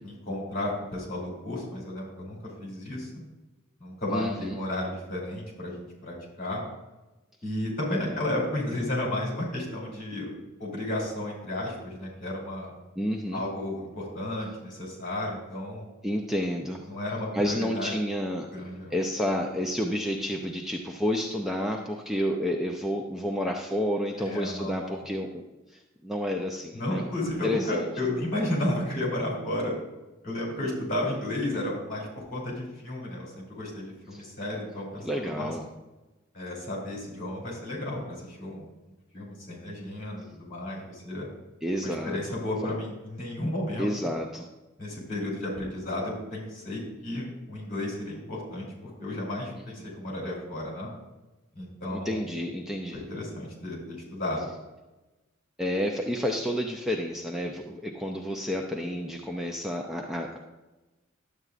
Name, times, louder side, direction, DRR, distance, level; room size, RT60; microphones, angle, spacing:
voice 1, 0.0-3.2 3.8-6.6 7.4-10.3 10.6-12.7 13.3-15.8 16.9-17.9 18.5-18.9 24.2-25.0 26.7-29.7 30.2-35.1 35.3-35.5 36.3-38.6 39.1-41.3 41.8-43.9 44.8-50.9 51.5-52.3 52.9-54.5, left 1 dB, 40° left, -3 dB, 3.1 m, -33 dB
voice 2, 4.1-4.6 8.0-8.2 13.0-13.4 16.0-16.9 17.3-18.5 18.9-25.4 25.7-27.0 27.4-27.8 34.1-34.2 35.0-35.7 41.6-42.2 43.8-44.5 49.6-49.9 51.9-53.0 55.6-60.4, equal, ahead, 0 dB, 0.5 m, -30 dB
11.0 x 7.9 x 2.5 m, 1.1 s
head